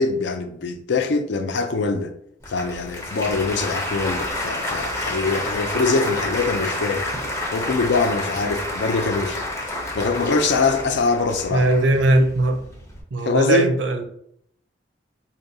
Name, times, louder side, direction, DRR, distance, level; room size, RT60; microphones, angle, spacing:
voice 1, 0.0-2.1 2.5-7.1 7.5-9.4 9.9-11.7 13.2-13.7, left 4 dB, 65° left, 0.4 m, -23 dB
Applause, 2.4-13.0, left 1 dB, 15° left, 0.6 m, -29 dB
voice 2, 11.5-12.6 13.1-14.0, right 1 dB, 70° right, 0.5 m, -19 dB
4.8 x 2.3 x 2.7 m
head